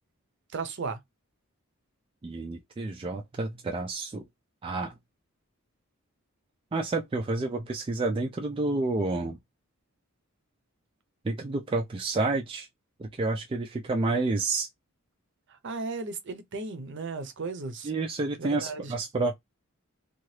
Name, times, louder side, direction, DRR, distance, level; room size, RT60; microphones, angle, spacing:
voice 1, 0.5-1.0 15.5-17.9 18.4-18.9, right 4 dB, 55° right, 0.6 m, -35 dB
voice 2, 2.2-4.2 4.6-4.9 6.7-9.4 11.2-12.7 13.0-14.7 17.8-19.3, right 3 dB, 25° right, 0.3 m, -29 dB
2.8 x 2.4 x 3.1 m
head